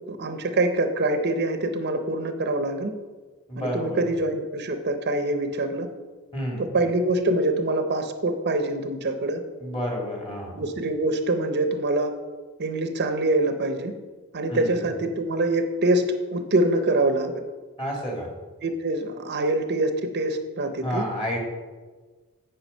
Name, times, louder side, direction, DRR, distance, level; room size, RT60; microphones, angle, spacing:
voice 1, 0.0-2.9 3.6-5.9 6.6-9.4 10.6-12.1 12.6-13.9 14.3-16.0 16.3-17.3 18.6-21.0, right 2 dB, 50° right, 7 dB, 0.7 m, -25 dB
voice 2, 3.5-4.1 6.3-6.7 9.6-10.6 14.5-14.8 17.8-18.3 20.8-21.4, equal, 25° left, -1 dB, 2.2 m, -30 dB
9.0 x 5.0 x 5.4 m, 1.4 s
head